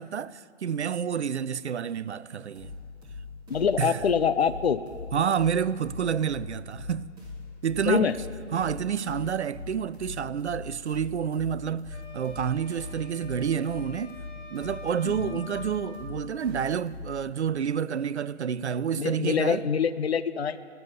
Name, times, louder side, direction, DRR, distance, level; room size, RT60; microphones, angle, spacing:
voice 1, 0.0-2.7 3.8-4.0 5.1-7.1 7.6-8.1 8.5-14.2 14.5-19.6, right 8 dB, 65° right, 0.6 m, -29 dB
sound 1, 2.5-17.3, left 4 dB, 10° right, 2.9 m, -42 dB
voice 2, 3.5-4.8 7.9-8.2 15.0-15.4 19.0-20.6, left 7 dB, 60° left, 0.8 m, -25 dB
sound 2, 11.9-16.1, left 1 dB, 85° left, 4.9 m, -47 dB
20.5 x 7.0 x 9.9 m
figure-of-eight pair, 140°, 36 cm